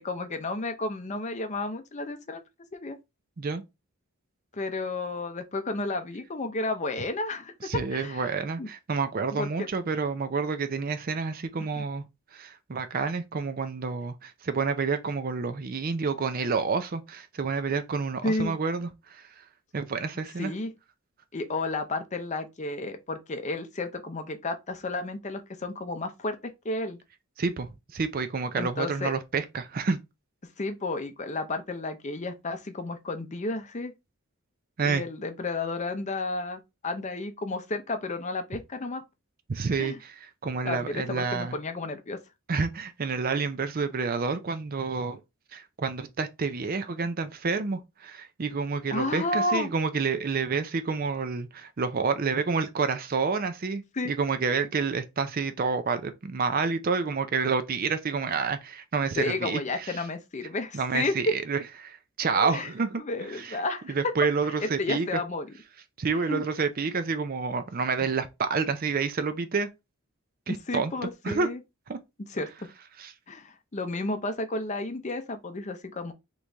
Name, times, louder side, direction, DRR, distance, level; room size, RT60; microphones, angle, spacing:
voice 1, 0.0-2.4 2.7-3.0 4.5-8.3 8.6-8.7 9.3-9.7 11.6-11.8 18.2-18.6 20.4-20.7 21.3-27.0 28.5-29.1 30.6-33.9 34.8-39.0 39.8-40.0 40.6-42.2 48.9-49.7 53.9-54.1 59.2-61.4 62.3-62.7 63.0-63.9 64.6-65.5 66.1-66.4 70.5-71.6 72.3-72.7 73.3-76.1, left 2 dB, 30° left, 0.6 m, -32 dB
voice 2, 7.6-12.0 12.3-19.4 19.7-20.5 27.4-30.0 34.8-35.0 39.5-41.6 42.5-45.2 45.5-53.8 54.1-60.0 60.7-63.0 63.3-63.6 63.9-65.1 66.0-69.7 70.5-70.9 71.2-71.5 71.9-72.0 73.0-73.1, right 4 dB, 40° right, 0.5 m, -29 dB
4.0 x 3.1 x 3.4 m
head